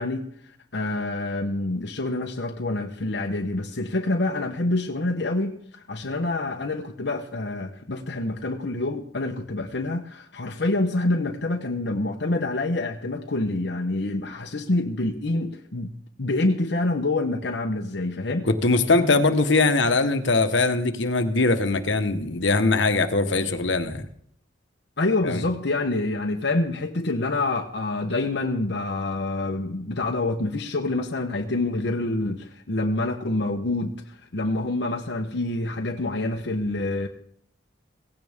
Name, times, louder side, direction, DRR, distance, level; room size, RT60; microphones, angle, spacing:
voice 1, 0.0-15.9 16.2-18.5 25.0-37.1, left 2 dB, 65° left, 3 dB, 1.0 m, -27 dB
voice 2, 18.5-24.1 25.2-25.4, left 3 dB, 80° left, 9 dB, 1.3 m, -21 dB
17.0 x 16.0 x 3.6 m, 0.66 s
head